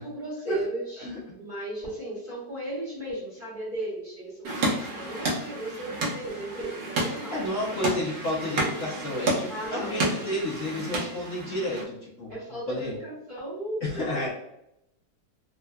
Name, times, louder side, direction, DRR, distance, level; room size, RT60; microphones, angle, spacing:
voice 1, 0.0-7.4 9.5-10.1 11.2-11.3 12.3-14.3, right 1 dB, 35° right, -8 dB, 1.0 m, -36 dB
sound 1, 4.4-11.8, right 2 dB, 60° right, 1.1 m, -31 dB
voice 2, 7.3-12.3 12.7-13.0 13.8-14.3, left 1 dB, 60° left, -7 dB, 0.8 m, -31 dB
3.5 x 2.1 x 2.2 m, 0.82 s
omnidirectional pair, 2.0 m